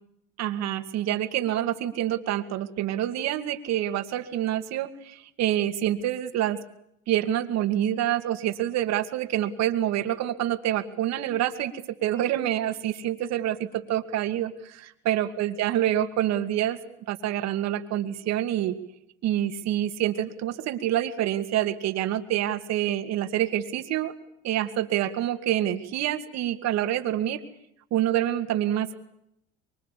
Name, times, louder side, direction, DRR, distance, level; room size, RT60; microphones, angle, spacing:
voice 1, 0.4-6.6 7.1-16.8 17.1-18.7 19.2-24.1 24.4-27.4 27.9-28.9, right 12 dB, 60° right, 8 dB, 2.5 m, -27 dB
25.0 x 24.0 x 8.5 m, 0.75 s
supercardioid pair, 95°, 29 cm